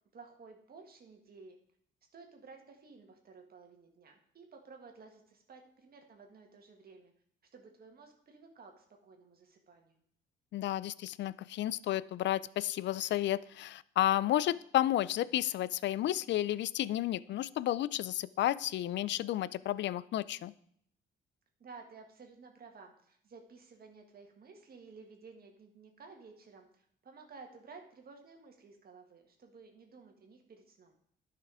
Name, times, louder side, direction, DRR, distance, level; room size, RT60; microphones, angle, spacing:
voice 1, 0.1-1.6 2.1-7.1 7.5-10.0 21.6-31.0, right 4 dB, 50° right, 3 dB, 1.7 m, -54 dB
voice 2, 10.5-20.5, left 13 dB, 65° left, 19 dB, 0.4 m, -32 dB
11.0 x 5.8 x 4.9 m, 0.66 s
cardioid pair, 90°, 20 cm